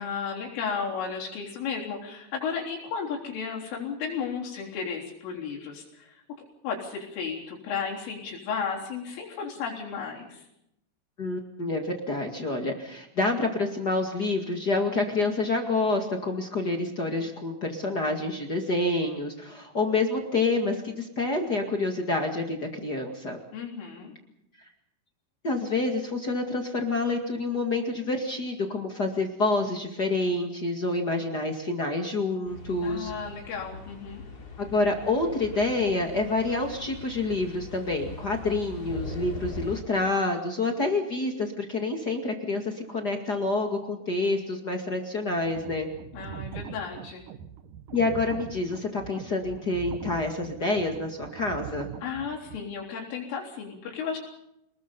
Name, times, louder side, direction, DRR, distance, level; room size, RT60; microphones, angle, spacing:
voice 1, 0.0-10.5 23.5-24.1 32.8-34.2 46.1-47.2 52.0-54.2, left 6 dB, 90° left, -3 dB, 6.3 m, -34 dB
voice 2, 11.2-23.4 25.4-33.1 34.6-45.9 47.9-51.9, left 2 dB, 50° left, 3 dB, 1.1 m, -28 dB
sound 1, 32.4-39.8, left 3 dB, 20° left, 3.4 m, -41 dB
sound 2, 45.3-52.6, right 9 dB, 85° right, 1.8 m, -41 dB
28.0 x 21.0 x 5.4 m, 0.82 s
omnidirectional pair, 5.5 m